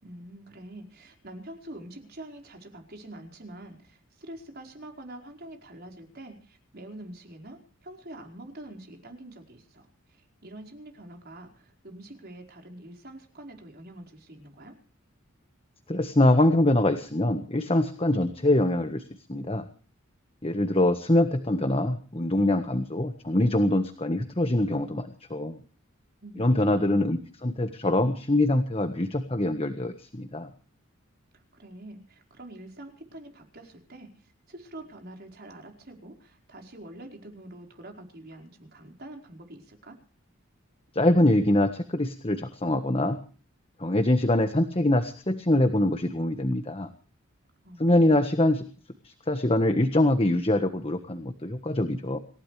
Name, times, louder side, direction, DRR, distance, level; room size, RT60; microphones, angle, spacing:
voice 1, 0.0-14.8 26.2-27.0 31.5-40.0 47.6-48.3, right 1 dB, 50° right, 3 dB, 4.9 m, -45 dB
voice 2, 15.9-19.0 19.3-19.6 20.4-25.6 26.4-30.5 40.9-43.2 43.8-46.9 47.8-48.6 49.0-52.2, left 1 dB, 25° left, 7 dB, 1.4 m, -24 dB
27.0 x 15.5 x 3.3 m, 0.41 s
head